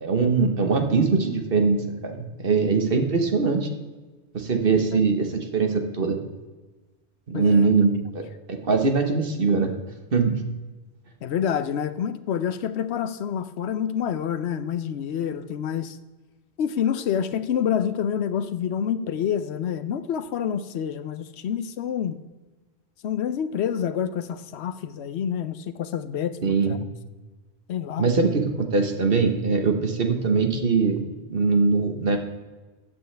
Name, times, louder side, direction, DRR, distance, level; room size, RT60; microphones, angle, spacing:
voice 1, 0.0-3.7 4.3-6.2 7.3-9.7 10.1-10.4 26.4-26.7 28.0-31.0 31.3-32.2, right 4 dB, 55° right, 5 dB, 1.4 m, -22 dB
voice 2, 7.3-7.7 11.2-16.0 16.6-22.2 23.0-26.8 27.7-28.1, left 8 dB, 75° left, 13 dB, 0.9 m, -27 dB
13.5 x 8.8 x 3.3 m, 1.3 s
omnidirectional pair, 1.1 m